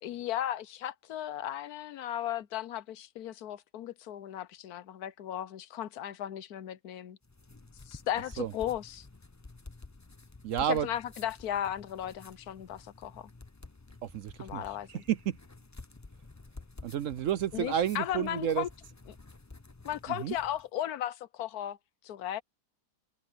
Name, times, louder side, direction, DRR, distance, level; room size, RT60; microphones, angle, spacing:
voice 1, 0.0-7.2 7.9-9.1 10.6-13.3 14.4-15.0 17.5-18.7 19.8-21.8 22.0-22.4, left 11 dB, 75° left, 1.2 m, -36 dB
sound 1, 7.2-20.7, left 3 dB, 20° left, 0.4 m, -51 dB
voice 2, 10.4-10.9 14.0-14.6 14.9-15.4 16.8-18.6 20.2-20.3, right 9 dB, 65° right, 0.9 m, -30 dB
omnidirectional pair, 1.7 m